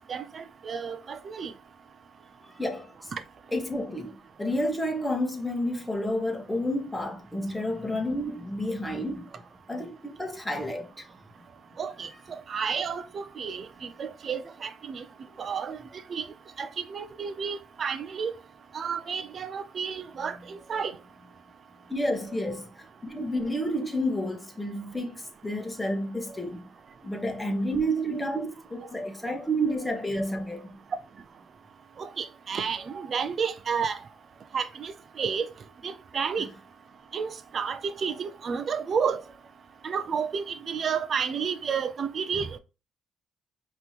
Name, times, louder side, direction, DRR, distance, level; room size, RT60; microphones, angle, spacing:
voice 1, 0.1-1.5 11.8-12.1 12.5-15.0 15.4-15.8 16.1-16.2 16.6-18.3 18.7-20.9 32.0-34.0 34.5-35.5 35.8-36.5 37.1-39.2 39.8-42.6, right 6 dB, 50° right, 0.5 m, -31 dB
voice 2, 2.6-3.1 3.5-9.3 9.7-11.1 21.9-26.7 27.0-30.8, equal, 10° left, 1.3 m, -30 dB
5.2 x 3.1 x 2.9 m
cardioid pair, 90°, 0 cm